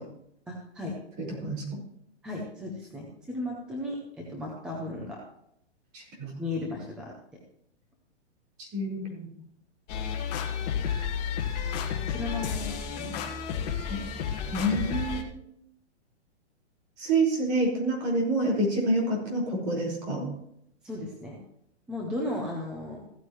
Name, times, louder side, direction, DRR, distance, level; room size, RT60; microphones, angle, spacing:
voice 1, 0.5-0.9 2.2-5.2 6.4-7.1 12.1-13.1 20.8-21.4 21.9-23.0, left 2 dB, ahead, -2 dB, 0.5 m, -35 dB
voice 2, 1.2-1.8 5.9-6.3 8.6-9.3 13.9-14.0 14.5-15.3 17.0-20.3, right 1 dB, 35° right, -2 dB, 4.4 m, -28 dB
sound 1, 9.9-15.2, left 7 dB, 35° left, 1.6 m, -31 dB
15.0 x 9.4 x 3.0 m, 0.75 s
hypercardioid pair, 155°, 35 cm